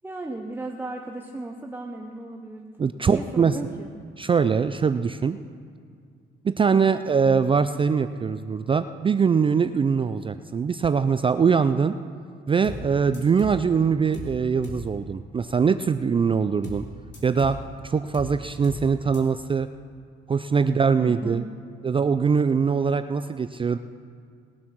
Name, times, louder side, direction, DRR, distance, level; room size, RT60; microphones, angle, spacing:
voice 1, 0.0-3.9 6.7-6.9 21.0-21.5, right 2 dB, 10° right, 3 dB, 0.8 m, -35 dB
voice 2, 2.8-3.6 4.2-5.4 6.4-12.0 12.5-16.9 17.2-17.6 17.8-19.7 20.3-21.4 21.8-23.8, right 6 dB, 25° right, 11 dB, 0.4 m, -22 dB
sound 1, 12.6-12.9 13.1-13.6 14.1-14.4 14.6-14.9 16.6-16.9 17.1-17.6 18.1-18.4 18.6-18.9 19.1-19.2, left 2 dB, 60° left, 3.0 m, -36 dB
20.0 x 7.3 x 6.2 m, 2.2 s
cardioid pair, 90°, 20 cm